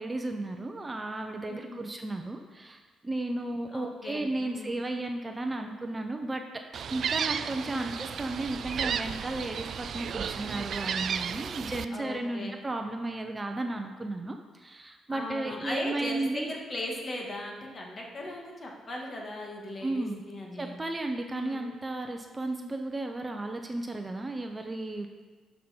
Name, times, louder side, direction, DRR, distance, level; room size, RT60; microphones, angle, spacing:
voice 1, 0.0-6.6 6.9-16.5 19.8-20.2 20.6-25.1, right 2 dB, 20° right, 4 dB, 0.7 m, -34 dB
voice 2, 1.5-1.9 3.7-4.8 7.6-8.0 11.9-12.5 15.1-20.8 21.3-21.7, left 1 dB, 35° left, -1 dB, 2.0 m, -38 dB
Gull seagull, 6.7-11.9, right 7 dB, 60° right, 0.3 m, -33 dB
11.5 x 5.5 x 4.5 m, 1.4 s
cardioid pair, 90°, 0 cm